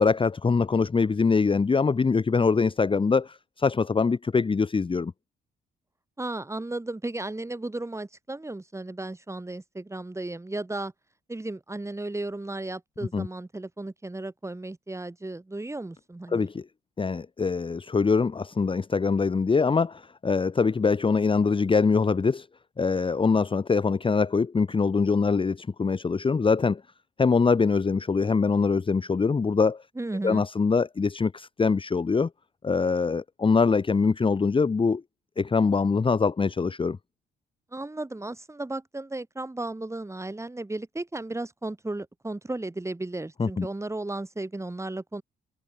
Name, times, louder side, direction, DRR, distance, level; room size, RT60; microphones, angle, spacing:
voice 1, 0.0-5.1 13.1-13.3 16.3-16.6 17.0-22.5 22.8-26.8 27.2-29.8 30.2-32.3 32.6-35.0 35.4-37.0 43.4-43.7, left 4 dB, 25° left, 1.1 m, -23 dB
voice 2, 6.2-10.9 11.3-16.5 29.9-30.5 37.7-45.2, right 2 dB, 15° right, 6.3 m, -34 dB
cardioid pair, 90°, 20 cm